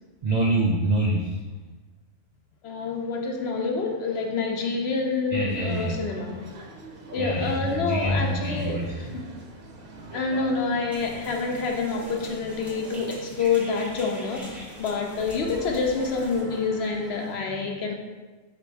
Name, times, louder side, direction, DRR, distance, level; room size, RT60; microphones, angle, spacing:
voice 1, 0.2-1.4 5.3-5.9 7.2-9.2, right 1 dB, 85° right, -2 dB, 0.3 m, -25 dB
voice 2, 2.6-6.4 7.1-8.8 9.1-9.3 10.1-17.9, left 4 dB, 65° left, 2 dB, 0.7 m, -27 dB
sound 1, 5.5-17.4, right 1 dB, 50° right, 0.9 m, -44 dB
sound 2, 10.9-16.4, equal, ahead, 0.4 m, -46 dB
4.1 x 2.5 x 4.6 m, 1.3 s
omnidirectional pair, 1.3 m